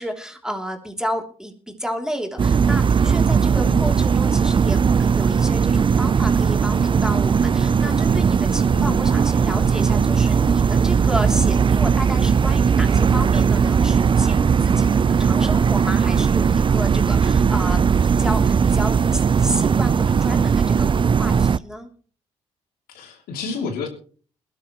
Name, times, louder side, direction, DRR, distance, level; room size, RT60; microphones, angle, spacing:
voice 1, 0.0-20.9 21.2-21.9, equal, 5° right, 4 dB, 3.1 m, -31 dB
sound 1, 2.4-21.6, right 6 dB, 30° right, 0.5 m, -18 dB
voice 2, 22.9-23.9, left 4 dB, 75° left, 3 dB, 3.1 m, -30 dB
21.0 x 12.5 x 3.1 m, 0.42 s
hypercardioid pair, 50°, 15 cm